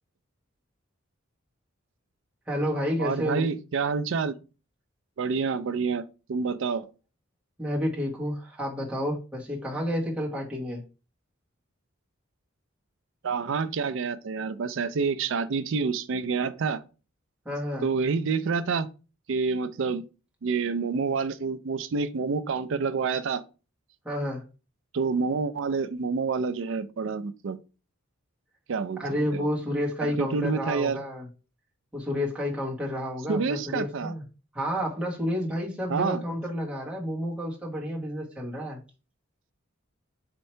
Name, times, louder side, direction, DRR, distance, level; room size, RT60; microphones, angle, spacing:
voice 1, 2.5-3.5 7.6-10.8 17.4-17.9 24.0-24.4 29.0-31.3 31.9-34.2 34.5-38.8, equal, 5° right, 1.2 m, -30 dB
voice 2, 3.0-4.3 5.2-6.0 6.3-6.9 13.2-16.8 17.8-18.9 19.3-20.0 20.4-23.4 24.9-27.6 28.7-29.0 29.3-29.5 30.2-31.0 33.3-34.1 35.9-36.2, right 5 dB, 60° right, 0.4 m, -28 dB
4.3 x 2.7 x 4.3 m
head